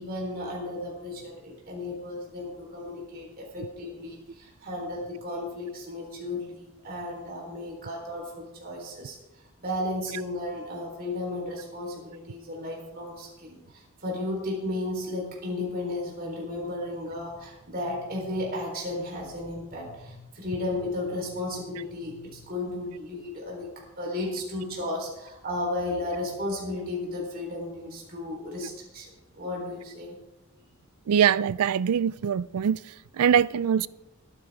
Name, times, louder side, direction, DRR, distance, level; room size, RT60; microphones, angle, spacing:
voice 1, 0.0-9.2 9.6-23.7 24.0-30.2, left 1 dB, 45° right, 4.1 m, -34 dB
voice 2, 31.1-32.8 33.2-33.9, right 8 dB, 85° right, 0.4 m, -23 dB
21.5 x 9.9 x 3.7 m
head